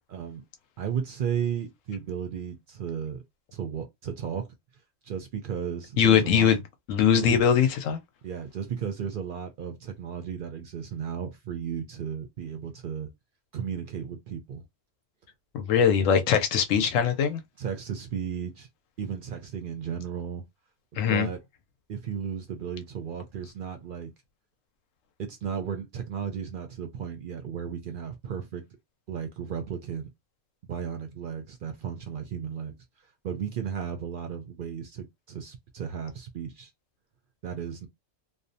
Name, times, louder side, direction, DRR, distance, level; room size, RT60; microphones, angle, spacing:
voice 1, 0.1-0.4 0.8-3.2 3.5-4.4 5.0-6.5 7.1-7.4 8.2-13.1 13.5-14.7 17.6-18.7 19.0-20.4 20.9-21.4 21.9-24.1 25.2-28.6 29.1-30.1 30.7-32.7 33.2-36.7 37.4-37.9, right 8 dB, 65° right, 0.5 m, -34 dB
voice 2, 6.0-6.6 6.9-8.0 15.5-17.4 21.0-21.3, left 7 dB, 80° left, 0.9 m, -21 dB
2.6 x 2.0 x 2.6 m
omnidirectional pair, 1.3 m